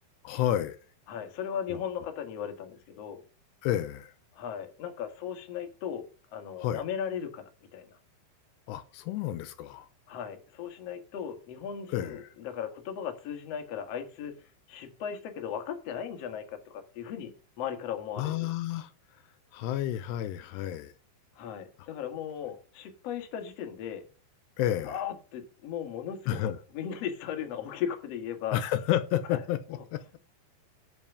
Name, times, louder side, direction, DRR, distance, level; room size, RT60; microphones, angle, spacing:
voice 1, 0.2-0.8 3.6-4.1 6.6-6.8 8.7-9.9 11.9-12.3 18.2-18.9 19.5-20.9 24.6-24.9 26.3-26.6 28.5-29.6 29.9-30.0, left 12 dB, 85° left, 2.8 m, -30 dB
voice 2, 1.1-3.2 4.3-6.1 6.3-8.0 10.1-14.4 14.7-18.5 21.4-24.0 24.8-28.6 29.3-29.4, left 8 dB, 55° left, 2.0 m, -37 dB
10.5 x 4.9 x 6.9 m
omnidirectional pair, 5.0 m